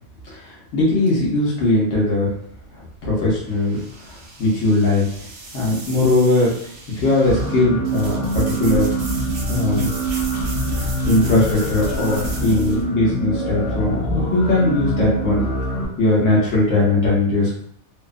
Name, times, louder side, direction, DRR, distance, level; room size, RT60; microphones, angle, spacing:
voice 1, 0.4-2.3 3.0-3.8 4.1-5.0 5.5-6.5 6.9-8.9 9.5-9.9 10.8-15.5 16.0-17.5, left 2 dB, 85° left, -6 dB, 1.1 m, -19 dB
sound 1, 2.5-12.8, equal, 65° right, 0.9 m, -34 dB
sound 2, 7.3-15.9, right 1 dB, 35° left, 0.5 m, -24 dB
2.7 x 2.0 x 2.4 m, 0.66 s
omnidirectional pair, 1.2 m